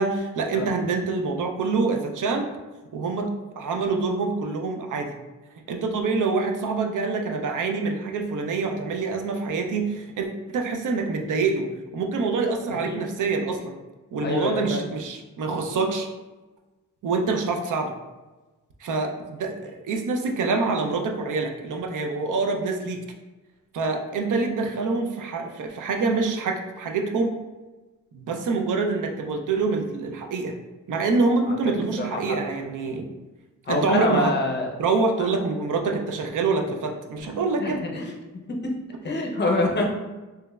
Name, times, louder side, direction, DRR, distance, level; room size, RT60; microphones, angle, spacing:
voice 1, 0.0-2.5 2.9-3.3 3.6-5.2 5.7-11.7 11.9-13.7 14.1-16.1 17.0-17.9 18.8-23.0 23.7-27.3 28.1-30.5 30.9-33.1 33.7-34.3 34.8-37.8, right 4 dB, 75° right, 3 dB, 0.5 m, -26 dB
voice 2, 14.2-14.8 32.0-32.4 33.7-34.7 35.2-35.3 37.6-38.1 39.0-39.9, left 2 dB, 35° left, 0 dB, 0.5 m, -25 dB
3.3 x 3.0 x 2.3 m, 1.2 s
wide cardioid pair, 145°, 31 cm